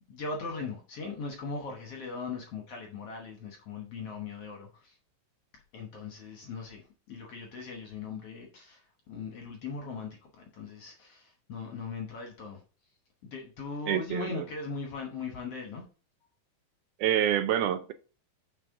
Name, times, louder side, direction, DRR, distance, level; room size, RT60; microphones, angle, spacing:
voice 1, 0.1-5.0 5.5-12.6 13.2-15.9, left 4 dB, 60° left, 1.7 m, -39 dB
voice 2, 13.9-14.5 17.0-17.9, right 10 dB, 80° right, 1.9 m, -27 dB
7.4 x 5.7 x 3.6 m
omnidirectional pair, 3.9 m